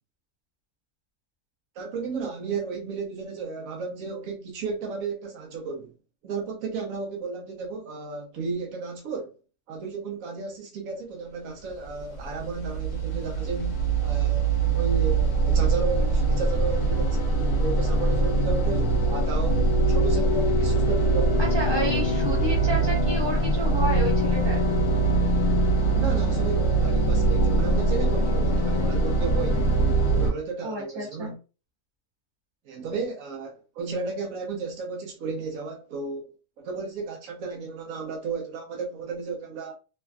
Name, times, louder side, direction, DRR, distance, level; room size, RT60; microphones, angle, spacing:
voice 1, 1.8-5.9 6.2-9.3 9.7-21.4 21.9-22.0 25.8-31.4 32.7-39.7, right 4 dB, 65° right, 1.0 m, -33 dB
sound 1, 11.8-30.3, right 2 dB, 55° left, 1.3 m, -23 dB
voice 2, 21.4-24.7 30.6-31.3, right 1 dB, 20° right, 0.9 m, -30 dB
3.2 x 2.5 x 2.2 m
omnidirectional pair, 1.7 m